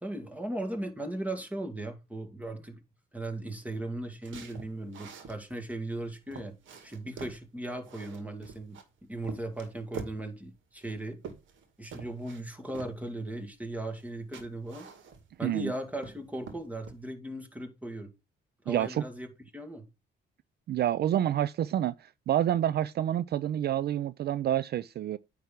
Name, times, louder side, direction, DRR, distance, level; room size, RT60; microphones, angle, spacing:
voice 1, 0.0-2.8 3.1-6.5 6.8-8.8 9.1-11.2 11.8-14.9 15.4-18.1 18.6-19.3 19.5-19.9, right 1 dB, 5° right, 2.2 m, -37 dB
sound 1, 4.2-5.4 5.9-6.0 6.3-7.4 7.8-8.9 9.2-10.2 10.8-11.7 11.9-12.4 12.7-12.9 14.0-14.1 14.3-15.4 15.8-16.2 16.5-17.0, right 5 dB, 75° right, 1.9 m, -45 dB
voice 2, 18.7-19.0 20.7-25.2, right 11 dB, 55° right, 0.4 m, -28 dB
9.3 x 3.4 x 6.0 m
cardioid pair, 90°, 20 cm